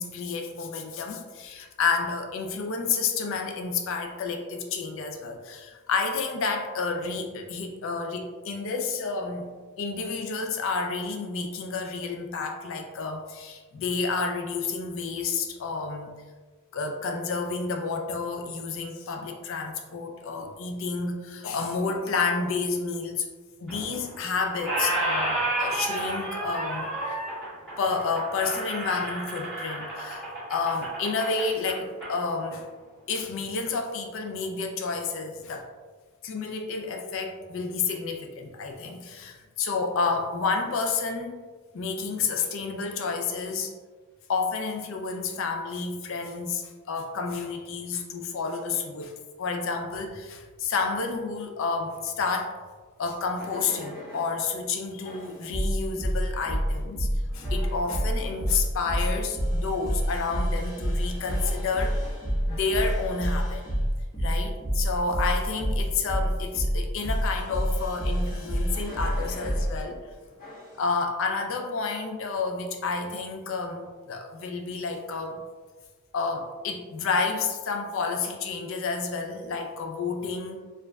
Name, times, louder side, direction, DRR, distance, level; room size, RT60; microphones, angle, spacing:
voice 1, 0.0-9.5 9.8-16.1 16.7-23.3 23.6-27.2 27.8-32.7 33.1-35.7 36.2-41.4 41.7-43.7 44.3-52.5 53.0-57.1 57.3-62.0 62.5-63.8 64.2-70.0 70.8-75.4 76.1-80.6, left 4 dB, 65° left, 4 dB, 0.4 m, -30 dB
Squeak, 23.7-24.2 24.5-32.1, right 1 dB, 5° left, 1.5 m, -31 dB
sound 1, 53.4-54.4 55.0-69.7 70.4-70.8, equal, 40° left, 1.4 m, -28 dB
4.3 x 2.5 x 2.2 m, 1.4 s
head